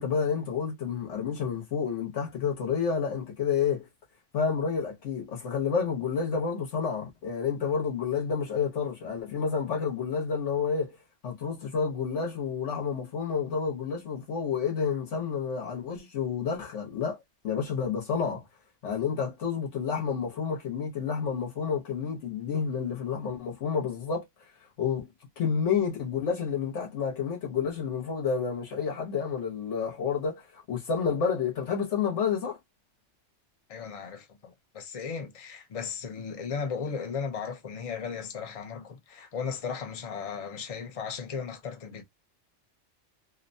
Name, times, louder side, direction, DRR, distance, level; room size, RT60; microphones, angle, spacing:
voice 1, 0.0-3.9 4.3-11.0 11.2-17.2 17.4-18.4 18.8-24.3 24.8-25.1 25.4-32.6, left 6 dB, 75° left, 1.2 m, -29 dB
voice 2, 33.7-42.0, left 6 dB, 40° left, 0.5 m, -36 dB
2.9 x 2.1 x 2.6 m
omnidirectional pair, 1.3 m